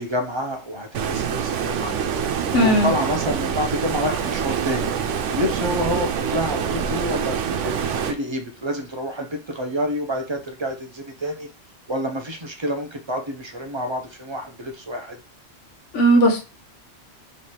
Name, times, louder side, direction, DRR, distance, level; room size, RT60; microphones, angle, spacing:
voice 1, 0.0-1.9 2.5-4.9 5.3-11.5 11.9-15.2, equal, 35° right, 0.5 m, -28 dB
Stream, 0.9-8.1, right 7 dB, 90° right, 0.9 m, -25 dB
voice 2, 2.5-2.9 15.9-16.4, right 1 dB, 85° left, 1.2 m, -16 dB
3.2 x 3.2 x 4.2 m
omnidirectional pair, 1.2 m